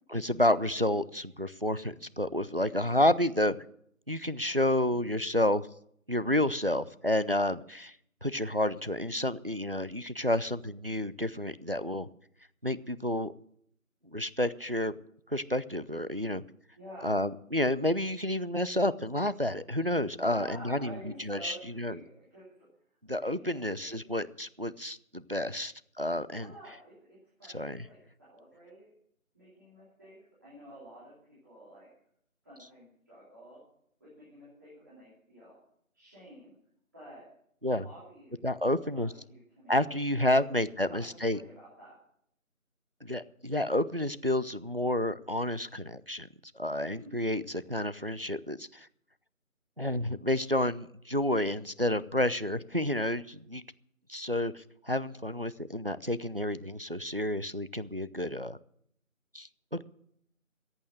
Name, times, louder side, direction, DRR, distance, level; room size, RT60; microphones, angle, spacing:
voice 1, 0.1-3.6 4.1-5.7 6.1-7.9 8.2-12.1 12.6-13.3 14.1-14.9 15.3-16.4 17.0-22.0 23.1-26.5 27.5-27.9 37.6-37.9 38.4-39.1 39.7-41.4 43.0-46.3 46.6-48.9 49.8-53.6 54.1-58.6 59.3-59.8, left 1 dB, 45° right, 16 dB, 0.4 m, -30 dB
voice 2, 16.8-17.2 20.2-22.7 23.1-24.0 26.3-28.9 29.3-31.9 32.4-33.6 34.0-35.6 35.9-36.5 36.9-37.3 37.8-38.4 38.7-40.4 40.7-42.0 46.8-47.1, right 1 dB, 15° right, -12 dB, 3.0 m, -50 dB
14.5 x 8.8 x 7.7 m, 0.69 s
figure-of-eight pair, 175°, 42 cm